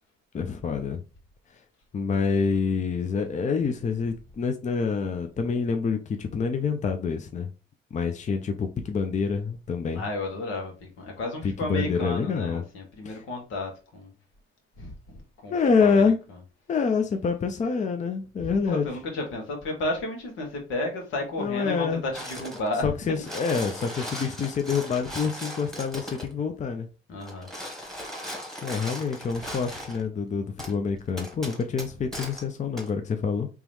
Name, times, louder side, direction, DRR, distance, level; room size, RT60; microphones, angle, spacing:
voice 1, 0.3-1.0 1.9-7.5 7.9-10.0 11.4-12.6 13.0-13.2 15.5-16.2 16.7-18.9 21.4-22.0 22.8-26.9 28.6-33.5, left 5 dB, 35° left, 0.6 m, -27 dB
voice 2, 9.9-14.1 14.8-15.2 15.4-15.5 15.8-16.0 18.4-22.9 27.1-27.5, left 2 dB, 85° left, 1.6 m, -32 dB
sound 1, 22.1-22.7 23.1-26.3 27.2-30.0 30.6-30.7 31.2-32.4 32.8-32.9, equal, ahead, 1.3 m, -38 dB
3.6 x 3.0 x 3.1 m
cardioid pair, 90°, 20 cm